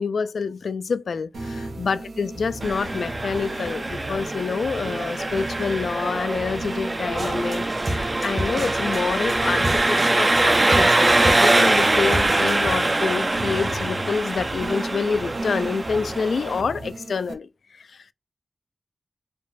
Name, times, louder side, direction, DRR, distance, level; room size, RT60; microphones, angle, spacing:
voice 1, 0.0-18.1, left 5 dB, 85° left, 0.3 m, -27 dB
sound 1, 1.3-17.3, right 2 dB, 90° right, 0.9 m, -35 dB
Engine, 2.6-16.6, right 2 dB, 30° right, 0.4 m, -23 dB
sound 2, 7.2-12.7, right 1 dB, 50° right, 1.3 m, -32 dB
5.2 x 2.1 x 4.0 m
wide cardioid pair, 65°, 0 cm